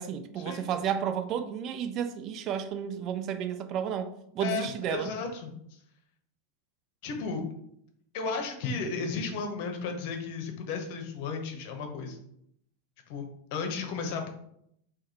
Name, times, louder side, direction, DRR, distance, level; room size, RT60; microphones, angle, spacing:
voice 1, 0.0-5.1, right 8 dB, 35° right, 0.3 m, -32 dB
voice 2, 4.4-5.8 7.0-7.4 8.1-12.2 13.1-14.3, left 4 dB, 45° left, 0.8 m, -34 dB
4.7 x 2.1 x 4.1 m
figure-of-eight pair, 90°, 0 cm